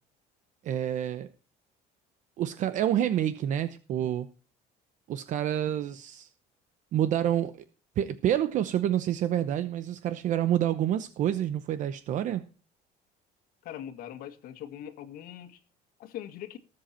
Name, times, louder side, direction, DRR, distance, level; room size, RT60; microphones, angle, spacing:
voice 1, 0.6-1.3 2.4-4.3 5.1-6.3 6.9-7.6 8.0-12.5, right 11 dB, 50° right, 0.8 m, -28 dB
voice 2, 13.6-15.6 16.0-16.6, left 11 dB, 60° left, 1.9 m, -41 dB
19.0 x 7.8 x 4.3 m
cardioid pair, 160°, 17 cm